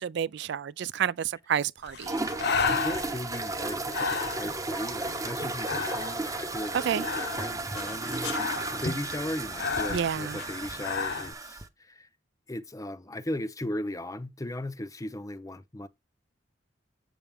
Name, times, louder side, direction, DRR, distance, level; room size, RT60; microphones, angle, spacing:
voice 1, 0.0-2.1 6.8-7.0 9.9-10.4, right 8 dB, 65° right, 0.4 m, -30 dB
Breathing, 1.8-11.3, left 5 dB, 60° left, 0.9 m, -34 dB
sound 1, 2.0-11.7, right 3 dB, 20° right, 0.8 m, -34 dB
voice 2, 2.7-8.4 8.7-12.1 12.5-15.9, left 1 dB, 20° left, 0.7 m, -37 dB
8.1 x 7.1 x 3.5 m
head